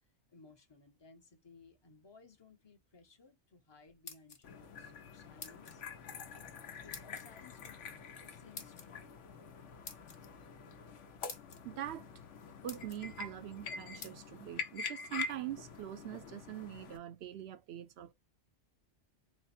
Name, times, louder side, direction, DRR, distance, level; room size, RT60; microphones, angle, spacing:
voice 1, 0.3-5.8 6.3-6.5 6.8-7.8 8.2-9.2, left 4 dB, 25° left, 0.7 m, -60 dB
sound 1, 3.8-4.7 5.4-5.8 6.9-7.3 8.6-8.9 9.8-10.2 10.9-11.0 11.3-11.6 12.2-12.3 12.7-13.0 14.0-14.2, left 4 dB, 55° left, 1.2 m, -48 dB
sound 2, 4.4-17.0, left 5 dB, 90° left, 1.1 m, -46 dB
voice 2, 11.6-12.1 12.6-18.1, right 12 dB, 70° right, 0.8 m, -43 dB
4.2 x 2.1 x 4.1 m
omnidirectional pair, 1.2 m